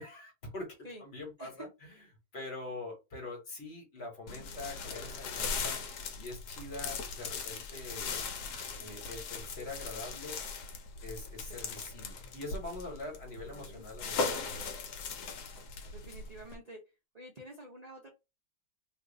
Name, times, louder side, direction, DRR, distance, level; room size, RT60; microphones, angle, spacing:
voice 1, 0.0-1.9 2.3-5.8 6.2-8.2 8.8-10.4 11.0-14.7, left 2 dB, 40° left, 1.2 m, -44 dB
sound 1, 4.3-16.6, left 4 dB, 75° left, 1.1 m, -39 dB
voice 2, 13.5-13.8 15.9-16.8 17.1-18.1, right 1 dB, 55° right, 0.4 m, -49 dB
2.7 x 2.5 x 3.8 m
omnidirectional pair, 1.9 m